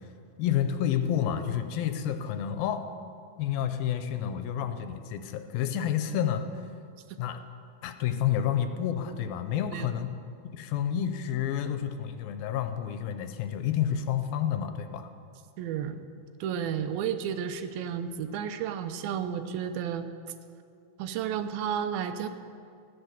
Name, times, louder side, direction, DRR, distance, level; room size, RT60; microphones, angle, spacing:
voice 1, 0.4-2.9 3.4-6.4 7.2-7.4 7.8-10.1 10.5-15.1, left 9 dB, 85° left, 8 dB, 2.4 m, -29 dB
voice 2, 15.6-16.0 16.4-20.1 21.0-22.3, right 8 dB, 85° right, 9 dB, 2.5 m, -32 dB
15.0 x 9.0 x 6.7 m, 2.4 s
omnidirectional pair, 4.3 m